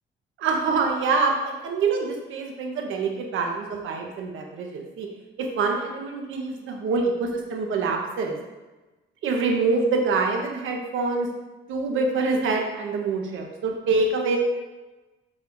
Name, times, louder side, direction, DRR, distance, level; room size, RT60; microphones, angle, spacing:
voice 1, 0.4-5.1 5.4-8.4 9.2-11.3 11.7-14.4, right 4 dB, 80° right, 1 dB, 1.2 m, -25 dB
7.4 x 6.5 x 2.7 m, 1.1 s
cardioid pair, 90°, 20 cm